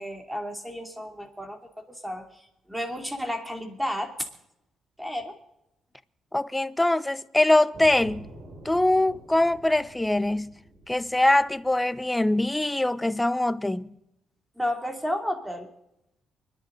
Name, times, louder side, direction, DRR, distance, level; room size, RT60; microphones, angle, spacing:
voice 1, 0.0-1.6 1.9-4.1 5.0-5.4 14.6-15.7, equal, 5° right, 2.8 m, -32 dB
voice 2, 6.3-8.3 8.6-10.5 10.9-13.9, left 1 dB, 10° left, 0.7 m, -23 dB
sound 1, 7.7-12.5, right 1 dB, 60° right, 5.1 m, -48 dB
24.5 x 11.0 x 3.9 m
cardioid pair, 90°, 0 cm